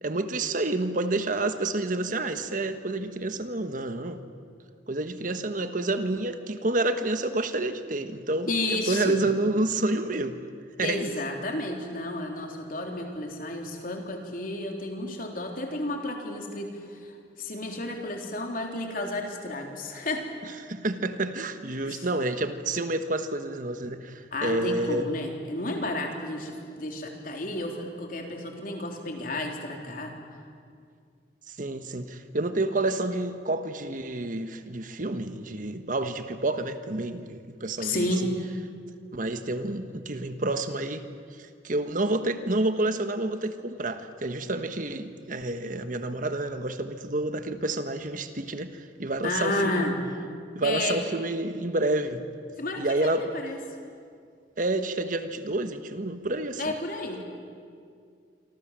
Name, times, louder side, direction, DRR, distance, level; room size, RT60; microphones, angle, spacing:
voice 1, 0.0-4.2 4.9-10.4 10.8-11.1 20.6-25.1 31.5-38.1 39.1-41.1 41.6-49.9 50.5-52.2 52.8-53.3 54.6-56.6, right 2 dB, 50° right, 9 dB, 1.4 m, -29 dB
voice 2, 8.5-9.2 10.8-17.1 17.4-20.3 21.8-22.1 24.3-30.2 37.8-38.3 49.2-50.0 50.6-51.0 52.6-53.6 56.6-57.2, left 2 dB, 50° left, 2 dB, 3.7 m, -31 dB
27.0 x 25.5 x 7.5 m, 2.3 s
head